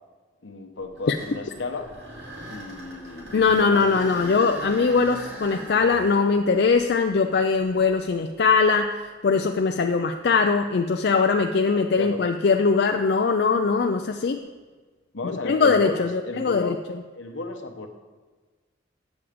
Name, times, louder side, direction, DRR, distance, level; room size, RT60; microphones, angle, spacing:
voice 1, 0.4-1.9 2.5-4.4 12.0-12.2 15.1-16.8 17.1-17.9, left 3 dB, 75° left, 3 dB, 1.0 m, -34 dB
sound 1, 0.8-8.8 9.4-9.5 10.3-10.4 13.9-14.3, right 1 dB, 60° right, 2.5 m, -41 dB
voice 2, 3.3-14.4 15.4-16.8, left 4 dB, 55° left, 5 dB, 0.4 m, -21 dB
8.5 x 7.1 x 5.0 m, 1.3 s
head